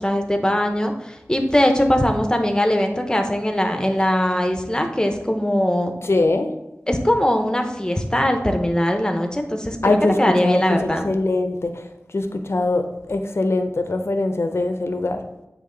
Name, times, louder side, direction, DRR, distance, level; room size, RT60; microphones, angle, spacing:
voice 1, 0.0-5.9 6.9-11.1, left 1 dB, 15° left, 4 dB, 0.7 m, -21 dB
voice 2, 6.0-6.5 9.8-11.8 12.1-15.2, left 2 dB, 60° left, 7 dB, 0.6 m, -22 dB
8.3 x 3.1 x 3.8 m, 0.92 s
wide cardioid pair, 65°, 5 cm